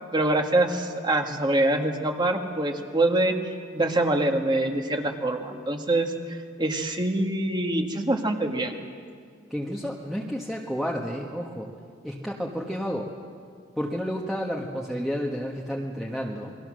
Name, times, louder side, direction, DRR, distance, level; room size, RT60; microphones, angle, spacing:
voice 1, 0.1-3.4 3.7-8.8, right 1 dB, 25° right, 4 dB, 1.7 m, -25 dB
voice 2, 9.5-11.7 12.0-13.1 13.8-16.5, equal, ahead, -2 dB, 1.5 m, -31 dB
29.0 x 21.5 x 6.4 m, 2.2 s
head